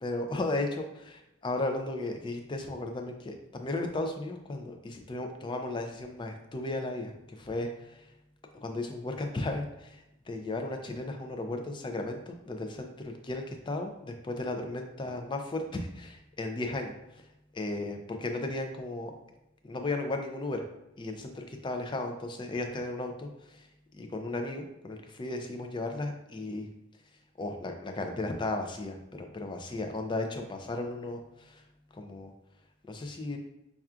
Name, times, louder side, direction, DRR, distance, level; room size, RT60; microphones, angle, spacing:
voice 1, 0.0-8.1 8.6-17.3 17.5-19.1 19.6-20.7 21.0-23.7 23.9-26.7 27.4-31.6 31.9-32.3 32.9-33.4, left 2 dB, 25° left, 4 dB, 0.4 m, -35 dB
5.6 x 2.3 x 2.3 m, 0.89 s
head